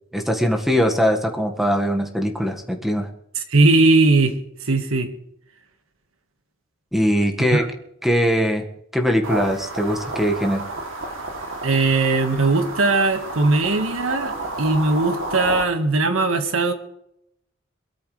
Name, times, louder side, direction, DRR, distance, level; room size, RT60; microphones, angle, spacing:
voice 1, 0.1-3.1 6.9-7.6 8.0-8.6 8.9-10.6, equal, ahead, 3 dB, 1.7 m, -21 dB
voice 2, 3.5-4.3 4.7-5.1 7.5-7.6 11.6-16.7, right 3 dB, 90° right, 7 dB, 1.7 m, -19 dB
sound 1, 9.2-15.6, right 2 dB, 70° right, 3.0 m, -31 dB
22.5 x 13.0 x 3.4 m, 0.76 s
head